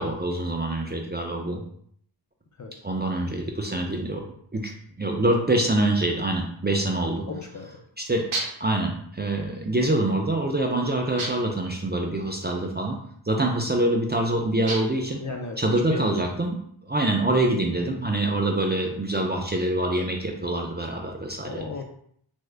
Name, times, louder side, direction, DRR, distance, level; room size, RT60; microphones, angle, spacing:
voice 1, 0.0-1.6 2.8-4.7 5.0-7.2 8.0-8.2 8.6-13.0 13.3-15.2 15.6-16.6 16.8-21.6, right 1 dB, 20° right, 0 dB, 0.4 m, -25 dB
voice 2, 7.3-7.7 15.2-16.1 21.4-21.8, left 3 dB, 40° left, 3 dB, 0.5 m, -34 dB
sound 1, 8.3-8.8 11.2-11.6 14.7-15.1, right 2 dB, 90° right, 0.7 m, -32 dB
3.6 x 2.1 x 3.2 m, 0.65 s
wide cardioid pair, 55°, 49 cm